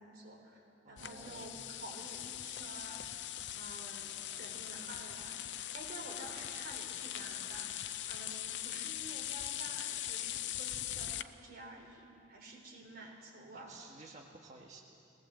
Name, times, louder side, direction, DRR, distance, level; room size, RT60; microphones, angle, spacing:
voice 1, 0.0-13.8, right 1 dB, 55° right, -1 dB, 4.3 m, -51 dB
voice 2, 0.8-1.5 13.5-14.8, right 3 dB, 40° right, -2 dB, 1.5 m, -53 dB
sound 1, 1.0-11.2, left 12 dB, 70° left, 0.6 m, -41 dB
21.0 x 18.0 x 7.8 m, 2.7 s
head